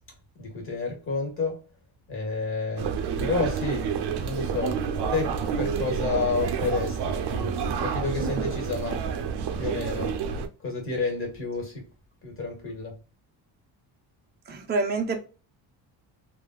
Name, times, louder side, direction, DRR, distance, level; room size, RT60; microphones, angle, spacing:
voice 1, 0.4-1.6 2.1-4.8 5.1-7.5 7.8-9.0 9.6-10.1 10.6-11.8 12.2-13.0, left 3 dB, 30° left, 1.5 m, -30 dB
sound 1, 2.8-10.5, right 6 dB, 65° right, 0.6 m, -29 dB
voice 2, 14.5-15.2, right 3 dB, 25° right, 0.6 m, -27 dB
3.5 x 2.5 x 2.3 m
cardioid pair, 120°, 44 cm